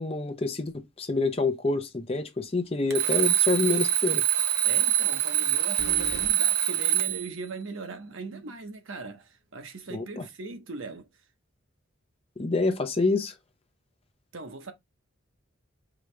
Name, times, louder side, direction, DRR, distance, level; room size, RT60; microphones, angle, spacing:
voice 1, 0.0-4.2 9.9-10.3 12.4-13.3, left 3 dB, 30° left, 0.6 m, -27 dB
sound 1, 2.7-3.1 3.5-3.6 5.8-6.3, left 1 dB, 65° left, 0.8 m, -41 dB
Alarm, 2.9-7.3, right 11 dB, 50° right, 0.7 m, -24 dB
voice 2, 4.6-11.1 14.3-14.7, right 4 dB, 75° right, 0.8 m, -40 dB
5.0 x 2.8 x 3.2 m
head